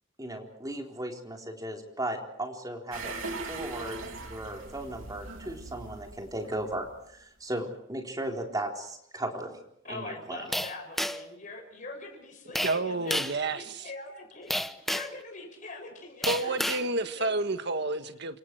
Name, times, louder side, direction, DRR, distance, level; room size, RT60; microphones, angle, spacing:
voice 1, 0.2-3.1 3.5-9.5 9.9-10.5, right 1 dB, 20° right, 1 dB, 4.0 m, -36 dB
sound 1, 2.9-7.2 7.6-7.7, right 3 dB, 85° right, 3.7 m, -40 dB
voice 2, 9.8-17.3, left 2 dB, 40° left, 1 dB, 7.1 m, -43 dB
sound 2, 10.5-11.4 12.6-12.8 13.1-13.4 14.5-15.2 16.2-16.9, equal, ahead, 0.9 m, -30 dB
voice 3, 12.6-13.9 16.2-18.4, right 2 dB, 60° right, 8 dB, 1.6 m, -30 dB
29.0 x 26.0 x 4.7 m, 0.72 s
head